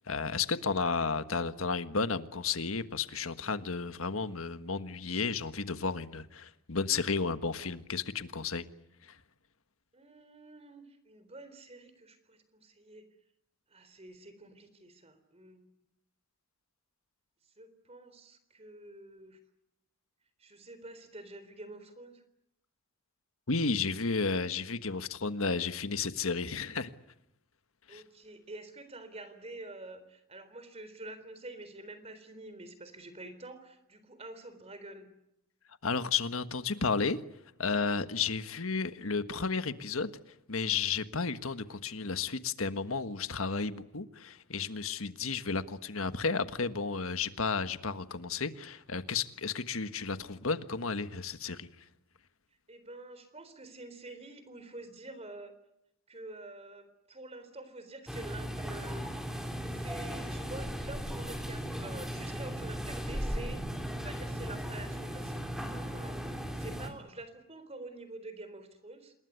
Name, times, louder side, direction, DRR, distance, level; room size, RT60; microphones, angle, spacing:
voice 1, 0.1-8.6 23.5-26.9 27.9-28.0 35.8-37.2 37.6-40.1 40.5-51.7, left 4 dB, 75° left, 1.5 m, -32 dB
voice 2, 9.9-13.1 13.7-15.7 17.6-19.4 20.4-22.2 27.9-35.1 52.7-55.5 56.1-59.2 59.7-63.6 64.0-69.1, right 2 dB, 30° right, 3.9 m, -47 dB
sound 1, 58.1-66.9, equal, ahead, 3.3 m, -37 dB
27.5 x 21.0 x 9.6 m
head